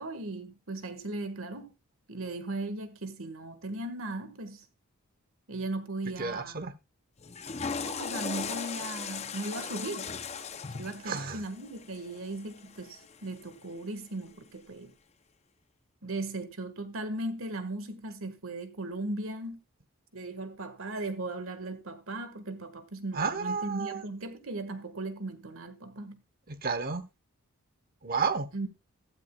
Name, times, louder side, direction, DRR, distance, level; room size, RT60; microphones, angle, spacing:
voice 1, 0.0-1.7 2.1-4.6 5.5-6.7 7.8-10.1 10.7-14.9 16.0-19.6 20.1-26.2 28.5-28.7, right 2 dB, 70° right, 1.6 m, -37 dB
voice 2, 6.2-6.7 11.0-11.4 23.1-24.0 26.5-27.0 28.0-28.5, right 5 dB, 40° right, 1.0 m, -31 dB
Water / Toilet flush, 7.2-13.4, left 5 dB, 30° left, 0.6 m, -38 dB
15.5 x 13.0 x 2.3 m
head